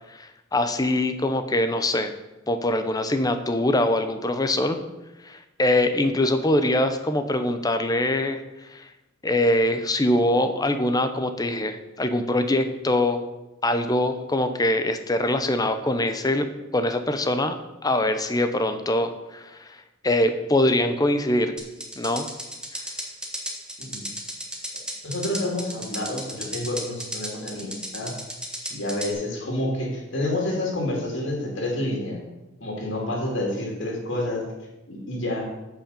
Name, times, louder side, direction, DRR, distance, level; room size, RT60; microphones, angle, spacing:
voice 1, 0.1-2.1 2.5-4.8 5.2-8.4 8.7-8.8 9.2-13.2 13.6-16.5 16.7-17.6 17.8-19.8 20.0-21.5 22.0-22.3, left 1 dB, 20° left, 9 dB, 0.7 m, -23 dB
sound 1, 21.6-29.1, equal, 5° right, 1.3 m, -34 dB
voice 2, 25.0-28.1 28.6-32.2 32.6-34.4 34.9-35.5, left 1 dB, 60° left, -1 dB, 2.5 m, -29 dB
9.0 x 5.3 x 6.8 m, 1.0 s
head